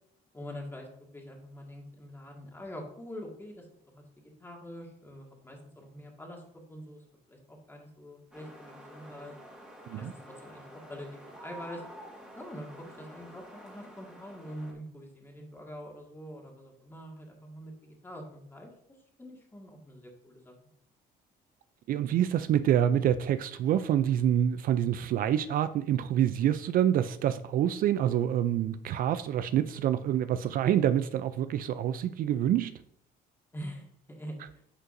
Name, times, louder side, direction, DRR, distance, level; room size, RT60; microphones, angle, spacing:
voice 1, 0.3-3.7 3.9-6.4 6.7-9.3 9.9-11.8 12.3-18.7 19.2-20.5 33.5-34.6, equal, 15° left, 1.9 m, -45 dB
sound 1, 8.3-14.7, right 1 dB, 5° right, 1.9 m, -49 dB
voice 2, 21.9-32.8, right 10 dB, 60° right, 0.4 m, -27 dB
9.7 x 5.4 x 2.6 m
cardioid pair, 110°, 17 cm